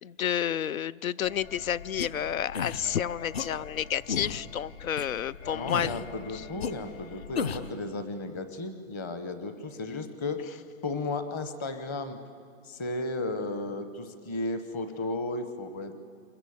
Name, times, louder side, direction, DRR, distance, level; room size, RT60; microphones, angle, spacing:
voice 1, 0.0-5.9, left 9 dB, 90° left, 22 dB, 0.7 m, -30 dB
sound 1, 1.2-7.7, left 6 dB, 70° left, 2.8 m, -46 dB
sound 2, 2.0-2.1 2.5-2.8 3.3-3.5 4.1-4.4 5.0-5.1 5.7-6.1 6.6-6.7 7.4-7.7, left 6 dB, 50° left, 1.1 m, -32 dB
voice 2, 5.5-10.4 10.8-12.2 12.6-15.9, left 2 dB, 15° left, 10 dB, 0.8 m, -34 dB
26.0 x 21.5 x 8.5 m, 2.2 s
hypercardioid pair, 165°, 40 cm